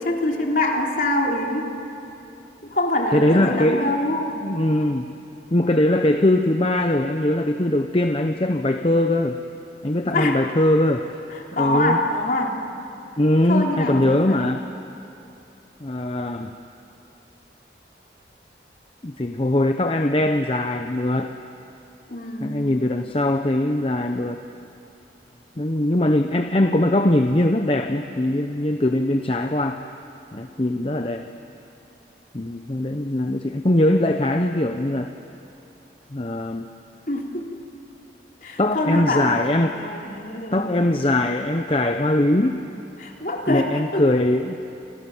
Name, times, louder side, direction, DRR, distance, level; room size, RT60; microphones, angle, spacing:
voice 1, 0.0-1.7 2.6-4.3 10.0-10.4 11.3-12.6 13.5-14.4 22.1-22.7 37.1-37.6 38.4-39.4 39.7-40.8 43.0-44.0, left 1 dB, 50° left, 0 dB, 3.2 m, -25 dB
voice 2, 3.1-3.8 4.4-5.1 5.5-9.4 9.8-11.1 11.5-12.0 13.2-14.6 15.8-16.5 19.0-21.3 22.4-24.4 25.6-29.8 30.3-31.2 32.3-35.1 36.1-36.7 38.6-39.8 40.5-42.6 43.5-44.6, left 1 dB, 30° left, 6 dB, 0.8 m, -21 dB
29.0 x 26.5 x 7.2 m, 2.8 s
head